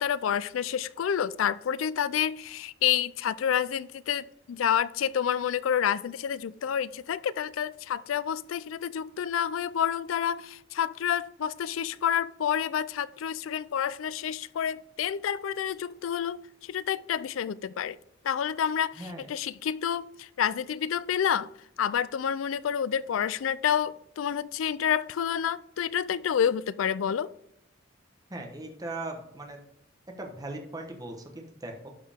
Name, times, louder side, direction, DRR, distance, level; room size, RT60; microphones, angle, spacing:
voice 1, 0.0-18.0 18.2-21.5 21.8-27.3, left 8 dB, 80° left, 0.4 m, -29 dB
voice 2, 28.3-29.6 30.2-31.9, right 2 dB, 20° right, 1.1 m, -39 dB
12.0 x 4.8 x 3.6 m
head